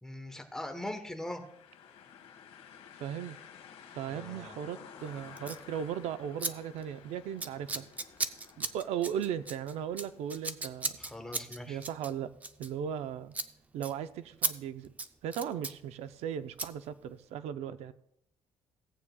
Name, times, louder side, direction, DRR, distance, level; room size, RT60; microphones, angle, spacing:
voice 1, 0.0-1.4 4.1-4.6 11.0-11.8, left 1 dB, 5° left, 3 dB, 1.0 m, -41 dB
sound 1, 1.2-11.0, left 7 dB, 75° left, 1.5 m, -53 dB
voice 2, 3.0-3.4 3.9-7.9 8.6-11.0 11.7-12.3 12.6-13.3 13.7-14.9 15.2-17.9, right 9 dB, 80° right, 12 dB, 0.5 m, -37 dB
Scissors, 5.4-5.6 6.4-6.5 6.8-7.0 7.4-13.0 13.3-13.5 13.8-13.9 14.4-14.5 14.8-15.8 16.6-16.7, right 3 dB, 15° right, 0.4 m, -36 dB
17.0 x 8.5 x 2.3 m, 0.74 s
cardioid pair, 180°, 11 cm